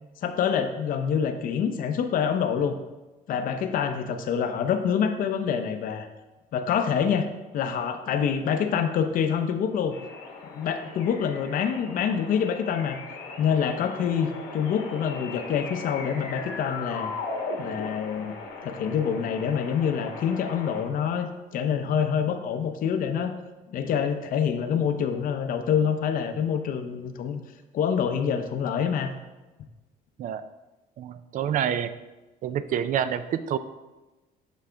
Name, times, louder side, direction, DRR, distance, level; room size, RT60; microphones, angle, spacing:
voice 1, 0.2-2.8 3.3-6.1 6.5-7.3 7.5-10.0 10.5-13.0 13.4-17.1 17.6-18.3 18.6-23.3 23.7-27.4 27.7-29.1, left 7 dB, 55° left, 7 dB, 0.6 m, -26 dB
sound 1, 9.9-20.8, left 4 dB, 85° left, 1.2 m, -38 dB
voice 2, 31.0-31.9 32.4-33.6, right 9 dB, 50° right, 12 dB, 0.4 m, -27 dB
6.1 x 5.6 x 3.3 m, 1.1 s
cardioid pair, 110°, 17 cm